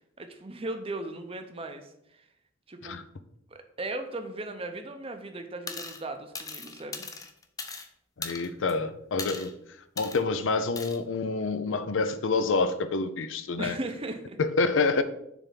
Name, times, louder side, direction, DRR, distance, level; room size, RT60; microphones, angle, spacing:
voice 1, 0.2-2.2 2.7-3.0 3.5-7.1 13.6-14.4, right 2 dB, 30° right, 6 dB, 0.7 m, -37 dB
sound 1, 5.7-6.0 6.3-7.9 8.2-8.7 9.2-9.5 10.0-10.2 10.8-11.0, left 4 dB, 15° left, 0.5 m, -38 dB
voice 2, 8.2-9.5 10.0-13.8 14.4-15.0, left 3 dB, 70° left, 11 dB, 0.5 m, -27 dB
7.1 x 3.5 x 5.7 m, 0.78 s
head